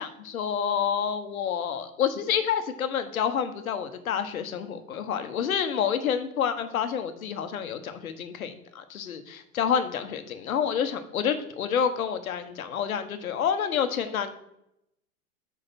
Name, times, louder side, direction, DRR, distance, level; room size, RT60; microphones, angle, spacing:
voice 1, 0.0-14.3, left 8 dB, 75° left, 9 dB, 1.2 m, -28 dB
7.9 x 5.2 x 4.3 m, 0.80 s
hypercardioid pair, 95°, 43 cm